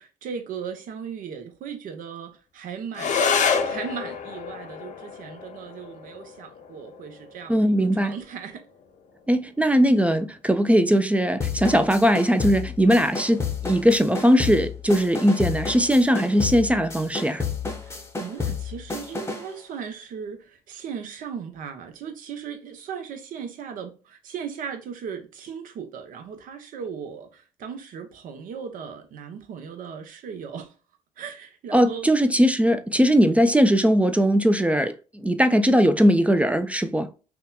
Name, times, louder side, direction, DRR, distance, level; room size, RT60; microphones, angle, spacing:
voice 1, 0.0-3.2 3.6-8.6 17.8-30.7 31.2-32.1, right 7 dB, 70° right, 0.7 m, -37 dB
sound 1, 2.9-11.9, left 6 dB, 60° left, 0.5 m, -30 dB
voice 2, 7.5-8.1 9.3-17.4 31.7-34.9 35.2-37.1, equal, 10° right, 0.3 m, -20 dB
sound 2, 11.4-19.5, left 5 dB, 20° left, 0.7 m, -31 dB
2.8 x 2.2 x 2.2 m
supercardioid pair, 70°, 15 cm